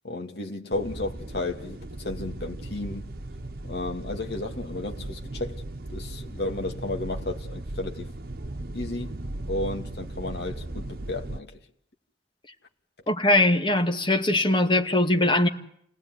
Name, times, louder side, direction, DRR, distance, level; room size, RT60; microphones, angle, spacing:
voice 1, 0.0-3.1 3.6-5.6 5.9-8.1 8.7-9.2 9.5-11.5, left 2 dB, 60° left, 2.6 m, -33 dB
sound 1, 0.7-11.4, right 1 dB, 55° right, 1.3 m, -37 dB
voice 2, 13.1-15.5, left 1 dB, 25° left, 2.1 m, -21 dB
29.5 x 19.0 x 9.7 m
head